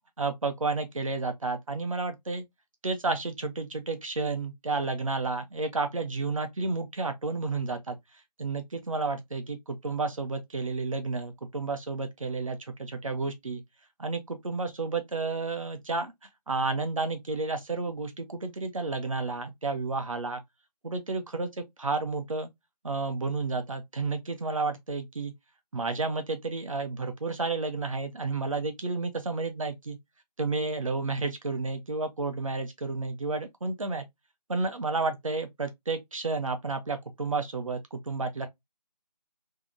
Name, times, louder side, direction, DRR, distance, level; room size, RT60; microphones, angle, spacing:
voice 1, 0.2-2.4 2.8-8.0 8.4-13.6 14.0-16.1 16.5-20.4 20.8-22.5 22.8-25.3 25.7-30.0 30.4-34.1 34.5-38.5, right 3 dB, 50° right, 0.6 m, -31 dB
2.8 x 2.0 x 2.5 m
figure-of-eight pair, 175°, 21 cm